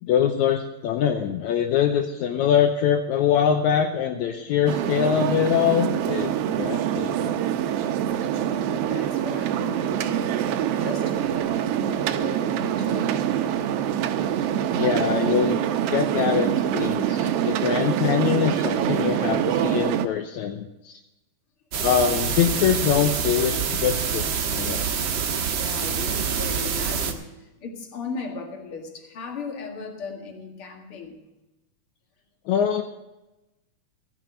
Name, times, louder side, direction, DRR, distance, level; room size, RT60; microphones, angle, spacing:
voice 1, 0.0-7.3 14.7-15.6 15.9-20.9 21.7-24.8 32.5-32.8, left 8 dB, 75° left, 5 dB, 2.1 m, -23 dB
sound 1, 4.7-20.1, right 10 dB, 75° right, 1.4 m, -25 dB
voice 2, 8.4-13.1 24.4-24.5 25.5-31.2, left 4 dB, 50° left, 3 dB, 2.6 m, -37 dB
sound 2, 21.7-27.1, right 6 dB, 55° right, 1.5 m, -26 dB
15.5 x 6.1 x 9.2 m, 1.0 s
omnidirectional pair, 3.5 m